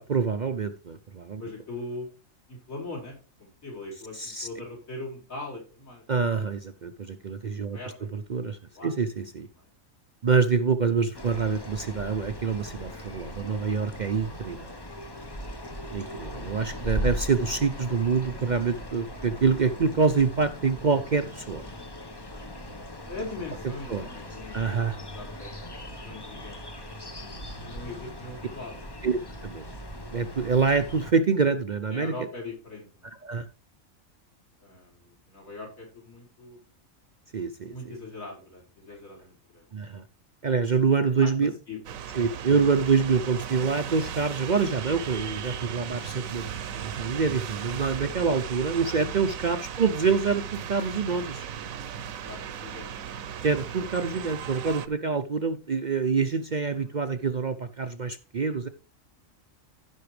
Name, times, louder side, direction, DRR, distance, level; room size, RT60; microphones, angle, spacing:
voice 1, 0.0-1.4 4.1-4.5 6.1-7.8 8.1-9.5 10.2-14.7 15.9-21.6 23.9-24.1 24.5-25.0 29.0-29.6 30.1-32.1 33.2-33.5 37.3-37.7 39.7-40.0 40.4-41.5 42.1-51.4 53.4-58.7, right 5 dB, 45° right, 0.6 m, -26 dB
voice 2, 1.4-2.1 2.5-6.0 7.7-8.2 8.7-8.9 9.6-9.7 15.9-16.0 23.1-25.6 26.0-26.6 26.8-28.8 31.9-33.1 34.6-36.6 37.7-39.6 41.1-41.8 52.3-52.9 56.8-56.9, left 2 dB, 85° left, 5.2 m, -41 dB
sound 1, 11.1-31.1, equal, 20° left, 1.0 m, -39 dB
sound 2, 41.8-54.9, right 8 dB, 90° right, 1.2 m, -36 dB
15.5 x 5.9 x 3.2 m
omnidirectional pair, 1.4 m